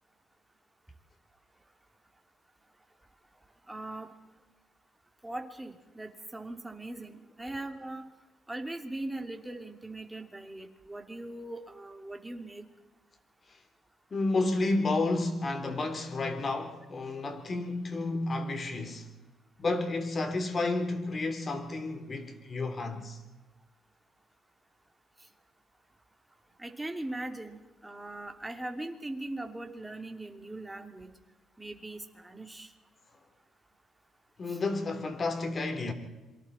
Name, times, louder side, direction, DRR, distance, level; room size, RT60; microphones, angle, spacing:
voice 1, 3.7-4.1 5.2-8.1 8.5-12.6 26.6-31.1 31.6-32.7 34.5-34.6, right 2 dB, 10° right, 2.8 m, -40 dB
voice 2, 14.1-19.1 19.6-23.2 34.4-35.9, left 2 dB, 40° left, 3.5 m, -31 dB
27.5 x 24.0 x 4.3 m
cardioid pair, 90°, 0 cm